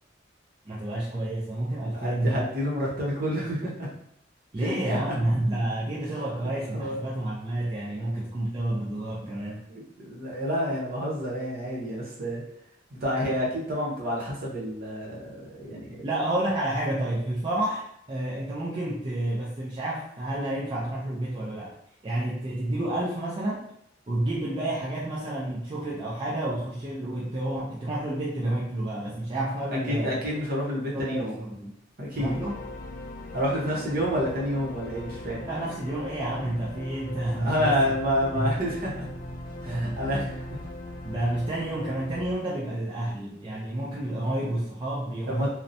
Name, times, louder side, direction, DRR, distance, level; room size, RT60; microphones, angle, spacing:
voice 1, 0.7-2.5 4.5-9.6 16.0-21.8 22.0-23.6 24.1-30.2 30.9-31.7 32.2-32.6 35.5-37.8 38.3-38.6 39.6-40.3 41.0-45.5, right 1 dB, 25° right, -6 dB, 0.4 m, -30 dB
voice 2, 1.9-3.9 4.6-5.1 6.7-7.0 9.7-12.4 13.0-16.0 29.9-31.4 32.0-32.4 33.3-35.4 37.4-39.1 39.6-40.6 45.3-45.5, equal, 55° right, -5 dB, 0.8 m, -29 dB
sound 1, 32.2-42.3, left 1 dB, 45° left, 0.3 m, -39 dB
2.7 x 2.1 x 2.5 m, 0.71 s
head